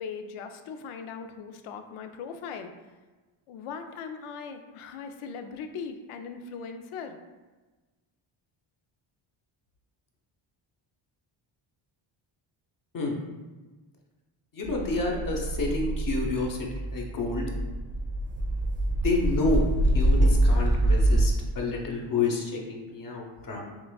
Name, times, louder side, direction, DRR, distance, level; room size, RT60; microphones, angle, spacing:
voice 1, 0.0-2.7 3.5-7.2, left 6 dB, 80° left, 7 dB, 0.6 m, -39 dB
voice 2, 14.5-17.5 19.0-23.7, left 3 dB, 40° left, 0 dB, 0.9 m, -29 dB
sound 1, 14.7-21.3, right 1 dB, 30° right, 0.9 m, -25 dB
5.9 x 2.4 x 2.3 m, 1.2 s
cardioid pair, 85°, 50 cm